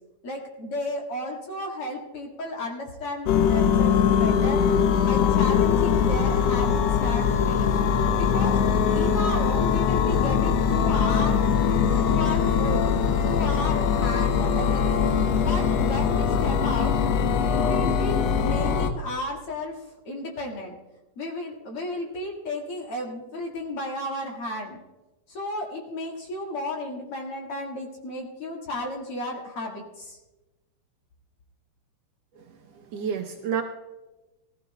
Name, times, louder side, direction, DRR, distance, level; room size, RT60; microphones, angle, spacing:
voice 1, 0.2-4.6 5.0-7.7 8.2-8.6 8.9-11.4 12.1-12.8 13.3-15.0 15.4-17.0 17.5-19.8 20.0-20.7 21.2-24.8 25.3-30.2, left 1 dB, 50° left, -1 dB, 2.6 m, -33 dB
sound 1, 3.3-18.9, left 7 dB, 75° left, 1.7 m, -22 dB
voice 2, 32.4-33.6, right 7 dB, 70° right, 4 dB, 1.7 m, -31 dB
20.5 x 14.5 x 2.2 m, 1.1 s
omnidirectional pair, 3.4 m